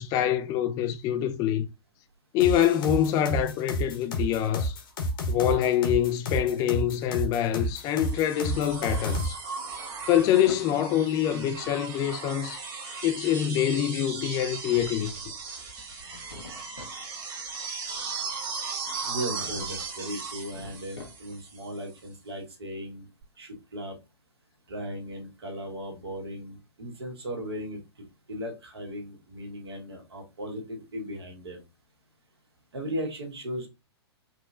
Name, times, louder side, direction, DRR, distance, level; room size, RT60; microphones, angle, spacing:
voice 1, 0.0-1.7 2.3-4.8 5.3-9.4 10.1-12.6 13.0-15.1, left 11 dB, 25° left, 0.4 m, -25 dB
sound 1, 2.4-9.3, equal, 50° left, 1.2 m, -30 dB
sound 2, 7.7-21.8 23.2-23.3, right 4 dB, 30° right, 1.6 m, -37 dB
Drawer open or close, 8.4-9.3 9.7-10.8 14.4-15.5 15.9-17.0 19.2-19.9 20.3-21.5, left 2 dB, 80° left, 1.1 m, -47 dB
voice 2, 19.0-23.1 23.4-23.9 24.7-31.6 32.7-33.7, equal, 70° right, 1.6 m, -37 dB
4.9 x 2.9 x 2.4 m
figure-of-eight pair, 110°, 14 cm